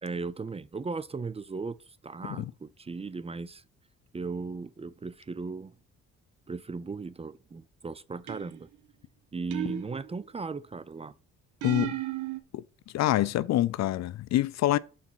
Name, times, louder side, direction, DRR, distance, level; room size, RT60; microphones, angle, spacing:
voice 1, 0.0-3.6 4.1-5.7 6.5-8.7 9.3-11.1, right 4 dB, 20° right, 0.5 m, -37 dB
sound 1, 8.3-8.8 9.5-10.4 11.6-12.4, right 13 dB, 75° right, 0.9 m, -34 dB
voice 2, 11.6-12.0 12.5-12.6 12.9-14.8, left 14 dB, 60° left, 0.5 m, -26 dB
6.0 x 4.2 x 6.2 m
cardioid pair, 90°, 30 cm